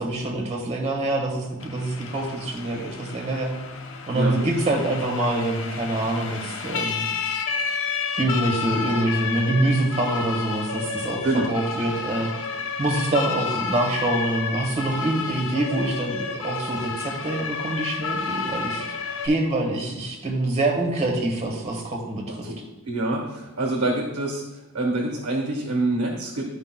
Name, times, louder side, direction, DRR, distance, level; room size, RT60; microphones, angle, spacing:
voice 1, 0.0-3.5 4.1-7.0 8.2-12.3 12.8-18.9 19.2-22.5, right 1 dB, 30° right, 1 dB, 1.4 m, -25 dB
Siren, 1.6-19.3, left 5 dB, 60° left, 0.7 m, -31 dB
voice 2, 22.8-26.5, right 2 dB, 85° right, -1 dB, 1.3 m, -26 dB
12.0 x 5.1 x 2.2 m, 1.0 s
head